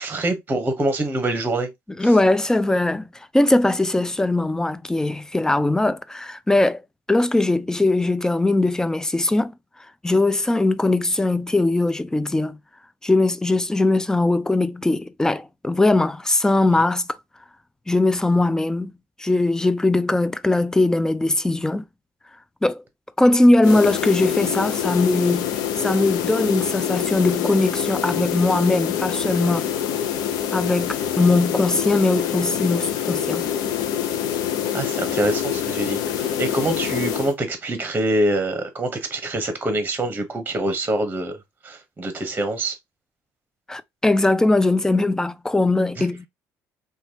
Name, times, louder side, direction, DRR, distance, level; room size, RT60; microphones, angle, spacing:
voice 1, 0.0-1.7 2.0-2.1 16.7-16.8 34.7-41.4 41.6-42.8 46.0-46.1, right 1 dB, 25° right, 0.9 m, -25 dB
voice 2, 2.0-3.1 3.3-6.8 7.1-9.5 10.0-12.6 13.0-17.1 17.9-18.9 19.2-21.8 22.6-22.8 23.2-25.5 25.8-29.7 30.5-33.5 43.7-46.3, left 2 dB, 10° left, 0.4 m, -20 dB
sound 1, 23.6-37.3, left 10 dB, 75° left, 0.5 m, -25 dB
3.1 x 2.3 x 2.7 m
supercardioid pair, 75°, 7 cm